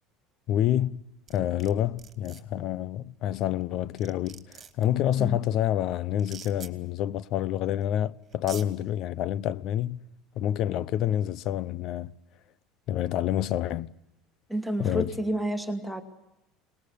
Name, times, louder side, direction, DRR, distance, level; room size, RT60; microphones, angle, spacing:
voice 1, 0.5-1.0 1.3-10.0 10.4-12.1 12.9-13.9 14.8-15.1, left 11 dB, 55° left, 0.8 m, -28 dB
sound 1, 1.3-1.7 2.0-2.4 3.6-3.7 4.0-4.8 6.2-6.7 7.8-7.9 8.3-8.7, right 8 dB, 35° right, 2.9 m, -44 dB
voice 2, 14.5-16.0, right 1 dB, ahead, 2.3 m, -30 dB
22.5 x 20.0 x 8.5 m
supercardioid pair, 110°, 0 cm